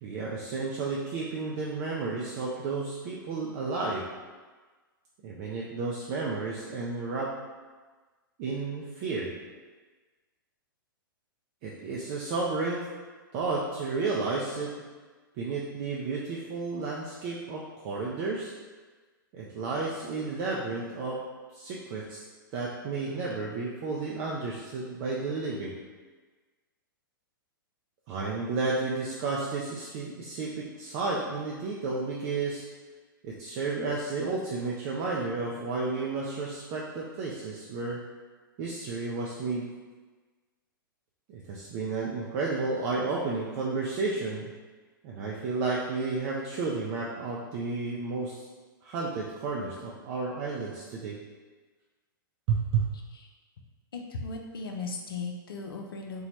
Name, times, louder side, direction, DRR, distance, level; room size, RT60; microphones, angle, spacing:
voice 1, 0.0-4.1 5.2-7.4 8.4-9.3 11.6-12.8 13.3-14.8 15.4-18.5 19.3-21.3 21.5-22.2 22.5-25.8 28.1-32.6 33.2-38.1 38.6-39.7 41.3-44.5 45.0-48.4 48.8-51.2 52.5-53.0, right 3 dB, 40° right, -4 dB, 0.4 m, -32 dB
voice 2, 53.9-56.3, left 3 dB, 75° left, 2 dB, 0.5 m, -37 dB
2.9 x 2.2 x 3.0 m, 1.3 s
hypercardioid pair, 115°, 12 cm